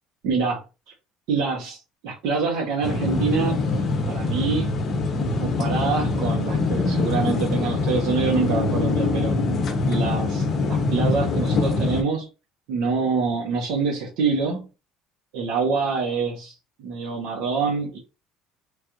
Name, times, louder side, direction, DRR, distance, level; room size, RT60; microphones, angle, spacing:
voice 1, 0.2-0.6 1.3-3.6 4.1-4.7 5.4-9.3 9.9-12.3 12.7-14.7 15.3-16.5 16.8-18.0, right 4 dB, 75° right, -1 dB, 0.9 m, -25 dB
sound 1, 2.8-12.0, left 3 dB, 30° left, 0.7 m, -24 dB
3.2 x 2.4 x 2.8 m, 0.29 s
cardioid pair, 175°, 0 cm